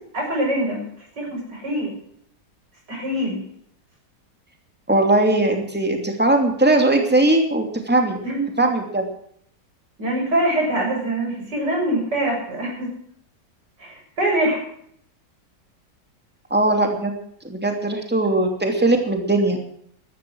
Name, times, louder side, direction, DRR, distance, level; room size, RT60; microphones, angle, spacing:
voice 1, 0.1-1.9 2.9-3.4 8.2-8.4 10.0-12.9 13.8-14.6, right 1 dB, 65° right, -1 dB, 7.8 m, -24 dB
voice 2, 4.9-8.2 8.6-9.0 16.5-17.1 17.5-19.6, right 2 dB, 5° right, 3 dB, 2.7 m, -19 dB
15.0 x 13.0 x 6.4 m, 0.65 s
omnidirectional pair, 2.0 m